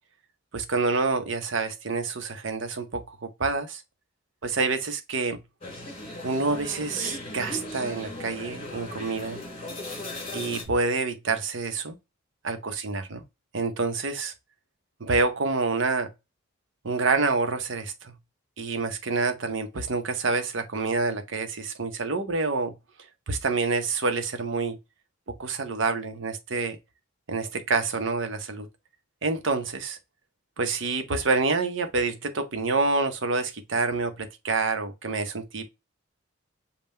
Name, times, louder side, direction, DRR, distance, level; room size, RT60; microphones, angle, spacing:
voice 1, 0.5-3.8 4.4-5.4 6.2-9.4 10.3-11.9 12.4-13.2 13.5-14.3 15.0-16.1 16.8-18.1 18.6-22.7 23.3-24.8 25.4-26.8 27.3-28.7 29.2-30.0 30.6-35.6, right 3 dB, 60° right, 0.8 m, -27 dB
sound 1, 5.6-10.6, left 2 dB, 30° left, 2.2 m, -37 dB
5.5 x 2.3 x 4.2 m
head